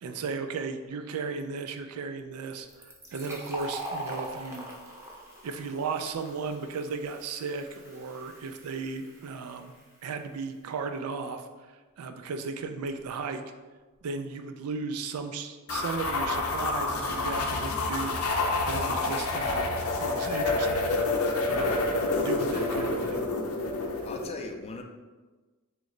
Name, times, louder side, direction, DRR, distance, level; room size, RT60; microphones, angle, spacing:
voice 1, 0.0-4.7 5.4-9.7 10.0-11.4 12.0-13.4 14.0-19.7 20.0-20.9 21.4-21.8 22.2-23.2, right 4 dB, 90° right, 7 dB, 0.4 m, -35 dB
Fill (with liquid), 2.7-10.1, right 1 dB, 15° right, 0.6 m, -42 dB
sound 1, 15.7-24.3, left 2 dB, 80° left, 0.5 m, -28 dB
voice 2, 24.0-24.8, left 3 dB, 30° left, 3 dB, 0.3 m, -39 dB
3.1 x 3.0 x 3.7 m, 1.3 s
head